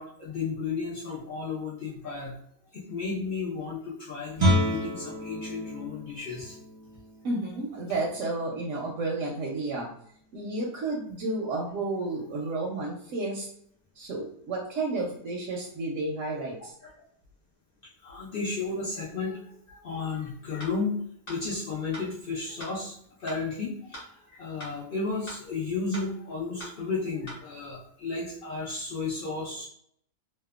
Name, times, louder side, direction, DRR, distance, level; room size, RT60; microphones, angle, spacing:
voice 1, 0.0-2.3 2.7-6.6 16.8-16.9 18.0-21.0 21.3-24.0 24.3-29.7, left 4 dB, 85° left, -6 dB, 0.4 m, -33 dB
Guitar, 4.3-9.9, equal, 40° right, 0.5 m, -31 dB
voice 2, 7.2-9.9 10.3-13.5 14.0-16.7, right 2 dB, 70° right, -2 dB, 0.8 m, -31 dB
sound 1, 20.6-20.7 21.3-21.4 21.9-22.0 22.6-22.7 23.3-23.4 23.9-24.1 24.6-24.7 25.3-25.4 25.9-26.1 26.6-26.7 27.3-27.4, equal, 45° left, 1.0 m, -40 dB
2.7 x 2.1 x 2.3 m, 0.68 s
omnidirectional pair, 1.7 m